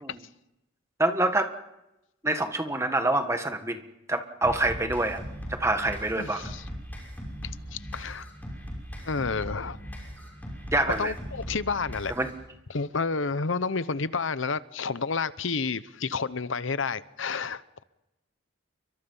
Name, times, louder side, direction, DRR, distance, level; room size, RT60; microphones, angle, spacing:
voice 1, 1.0-1.5 2.2-3.8 4.1-5.2 5.5-6.4 10.7-11.1 12.2-12.3, right 2 dB, 15° right, 1.6 m, -26 dB
sound 1, 4.4-12.4, equal, 10° left, 6.1 m, -39 dB
voice 2, 6.1-6.6 7.7-8.3 9.0-9.8 10.9-12.1 12.7-17.6, left 4 dB, 70° left, 0.9 m, -30 dB
29.5 x 24.0 x 5.6 m
head